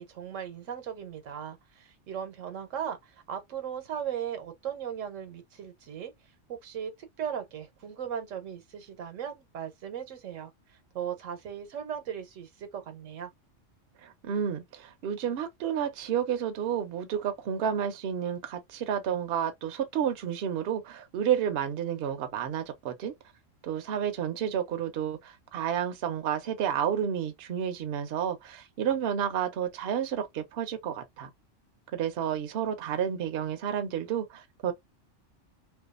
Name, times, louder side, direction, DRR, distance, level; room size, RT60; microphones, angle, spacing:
voice 1, 0.0-6.1 6.5-13.3, right 8 dB, 85° right, 1.1 m, -37 dB
voice 2, 14.0-23.1 23.6-31.3 31.9-34.7, right 9 dB, 60° right, 0.7 m, -31 dB
2.5 x 2.3 x 2.4 m
omnidirectional pair, 1.3 m